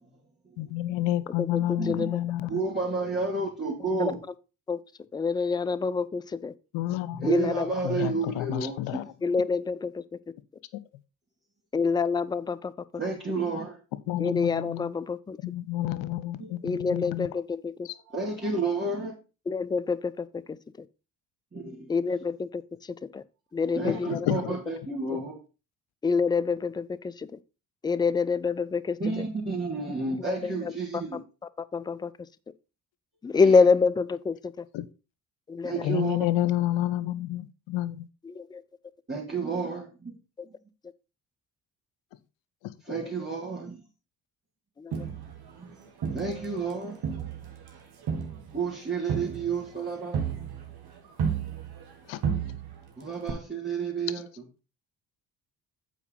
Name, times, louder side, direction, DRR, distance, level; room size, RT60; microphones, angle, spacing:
voice 1, 0.6-2.6 6.7-7.3 7.8-9.0 10.7-10.8 14.1-14.9 15.4-17.3 17.8-17.9 23.8-24.5 34.7-34.8 35.8-38.1 52.1-52.2, left 14 dB, 60° left, 0.8 m, -29 dB
voice 2, 1.4-2.2 4.0-4.1 4.7-4.8 5.1-6.5 7.2-7.7 9.2-10.0 11.7-12.7 13.4-13.5 14.2-15.4 16.6-17.9 19.5-20.9 21.9-23.2 23.5-24.3 26.0-27.4 27.8-29.2 30.2-30.7 31.1-31.2 31.7-32.1 33.2-34.7 35.5-36.0 38.2-38.6 40.4-40.5 42.9-43.0 44.8-45.1, left 4 dB, 10° left, 0.4 m, -27 dB
voice 3, 2.5-4.2 7.1-9.0 13.0-13.8 16.4-16.5 18.1-19.1 21.5-21.9 23.7-25.3 29.0-31.2 35.6-36.2 39.1-40.2 42.9-43.8 45.6-45.7 46.1-47.0 48.5-50.2 53.0-54.3, right 4 dB, 20° right, 2.8 m, -31 dB
Crowd, 44.9-46.7 47.0-52.0 52.2-52.9 53.3-53.4, right 7 dB, 50° right, 1.9 m, -33 dB
8.3 x 4.7 x 5.4 m
figure-of-eight pair, 40°, 49 cm